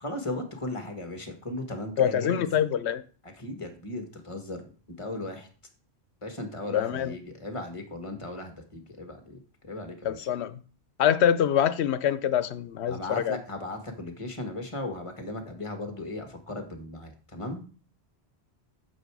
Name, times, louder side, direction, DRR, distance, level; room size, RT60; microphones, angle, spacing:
voice 1, 0.0-2.4 3.2-4.7 5.0-5.5 6.2-10.3 12.9-17.6, left 2 dB, 30° left, 1.6 m, -37 dB
voice 2, 2.0-3.0 6.7-7.2 10.0-10.6 11.0-13.4, left 9 dB, 85° left, 0.9 m, -25 dB
9.1 x 6.6 x 4.7 m
omnidirectional pair, 1.1 m